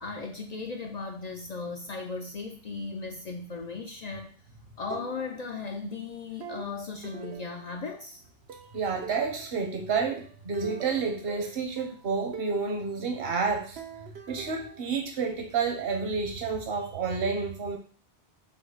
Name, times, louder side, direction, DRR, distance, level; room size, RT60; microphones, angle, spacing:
voice 1, 0.0-4.3 4.8-8.2, left 4 dB, 55° left, 3 dB, 0.5 m, -37 dB
sound 1, 4.9-5.7 6.4-8.0 8.5-9.7 10.2-12.7 13.8-15.6, right 8 dB, 85° right, 0.9 m, -44 dB
voice 2, 8.7-13.8 14.3-17.8, right 5 dB, 70° right, 3 dB, 1.1 m, -30 dB
5.9 x 2.0 x 3.9 m, 0.42 s
omnidirectional pair, 1.1 m